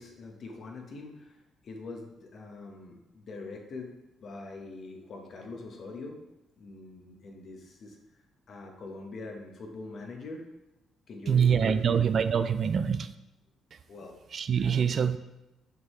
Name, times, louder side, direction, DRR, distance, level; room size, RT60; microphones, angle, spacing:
voice 1, 0.0-6.2 6.6-8.0 8.5-10.4 11.1-12.0 13.9-14.2 14.6-15.1, left 3 dB, 55° left, 2 dB, 1.2 m, -43 dB
voice 2, 11.3-13.1 13.7-13.8 14.3-15.2, right 7 dB, 50° right, 12 dB, 0.3 m, -25 dB
5.9 x 5.6 x 3.2 m, 0.96 s
cardioid pair, 90°, 0 cm